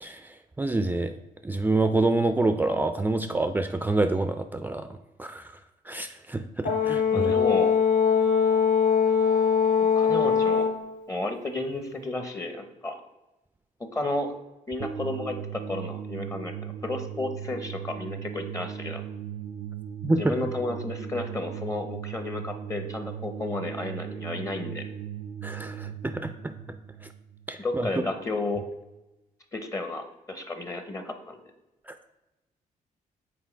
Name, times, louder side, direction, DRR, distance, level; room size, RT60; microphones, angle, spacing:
voice 1, 0.0-1.1 1.4-5.6 5.8-7.3 20.0-20.3 25.4-26.5 27.0-27.1 27.5-27.9 31.9-32.0, right 2 dB, 15° right, 8 dB, 0.3 m, -27 dB
Brass instrument, 6.6-10.9, left 6 dB, 85° left, 0.6 m, -22 dB
voice 2, 7.1-7.8 9.8-10.7 11.1-13.0 13.9-14.3 14.7-19.0 20.2-24.9 27.6-28.6 29.5-31.4, left 2 dB, 25° left, 7 dB, 0.7 m, -32 dB
sound 1, 14.8-27.9, right 9 dB, 80° right, 0.5 m, -38 dB
5.9 x 4.0 x 4.4 m, 1.0 s
cardioid pair, 85°, 14 cm